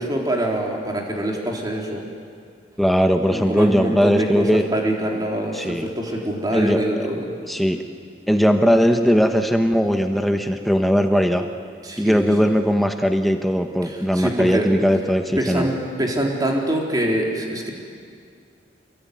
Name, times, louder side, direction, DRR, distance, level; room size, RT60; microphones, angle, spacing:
voice 1, 0.0-2.0 3.3-7.2 11.8-12.3 13.8-14.7 15.4-17.7, right 1 dB, 20° right, -1 dB, 3.6 m, -24 dB
voice 2, 2.8-4.7 5.5-5.9 6.5-7.1 7.5-7.8 8.3-11.5 12.0-15.7, equal, ahead, 5 dB, 1.1 m, -19 dB
26.5 x 21.5 x 9.5 m, 2.2 s
head